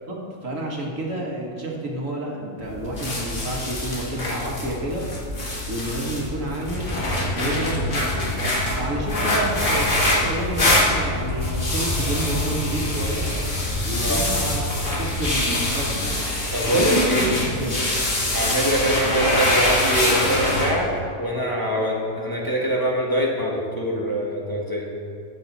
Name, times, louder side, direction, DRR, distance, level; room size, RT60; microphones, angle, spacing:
voice 1, 0.1-5.1 5.7-7.0 7.3-8.3 8.7-13.3 13.8-14.7 15.0-16.2 16.7-17.9, right 1 dB, 70° right, -1 dB, 2.0 m, -29 dB
sound 1, 2.6-20.7, left 1 dB, 65° left, 2.4 m, -25 dB
sound 2, 6.7-15.4, left 1 dB, 35° left, 1.8 m, -30 dB
voice 2, 16.5-17.3 18.3-20.9 21.2-24.9, equal, 15° left, -3 dB, 1.6 m, -24 dB
14.5 x 9.4 x 4.1 m, 2.4 s
omnidirectional pair, 1.4 m